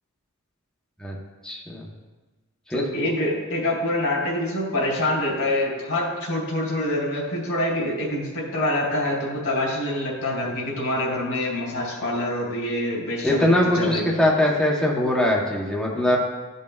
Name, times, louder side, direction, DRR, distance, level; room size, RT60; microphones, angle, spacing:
voice 1, 1.4-1.9 2.7-2.8 13.2-16.2, left 1 dB, 5° left, -3 dB, 0.9 m, -21 dB
voice 2, 2.9-13.4 13.7-14.0, left 1 dB, 85° left, -3 dB, 2.4 m, -25 dB
15.0 x 5.3 x 2.3 m, 1.3 s
head